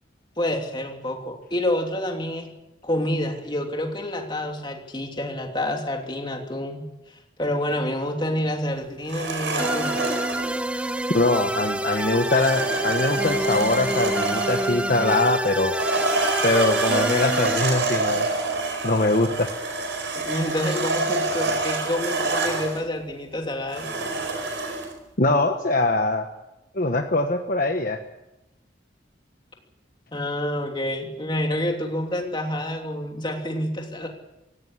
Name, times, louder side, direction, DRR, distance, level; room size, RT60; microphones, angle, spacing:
voice 1, 0.4-2.5 2.8-6.9 7.4-10.1 20.1-23.9 30.1-34.1, left 1 dB, 25° left, 2 dB, 3.0 m, -28 dB
sound 1, 9.1-10.5 12.2-14.8 15.6-22.8 23.7-24.9, right 3 dB, 80° right, 4.9 m, -27 dB
sound 2, 9.6-17.6, right 1 dB, 5° right, 0.7 m, -27 dB
voice 2, 11.1-15.7 16.4-18.3 18.8-19.5 25.2-26.3 26.7-28.0, left 2 dB, 50° left, 4 dB, 1.3 m, -22 dB
17.0 x 17.0 x 10.0 m, 0.96 s
head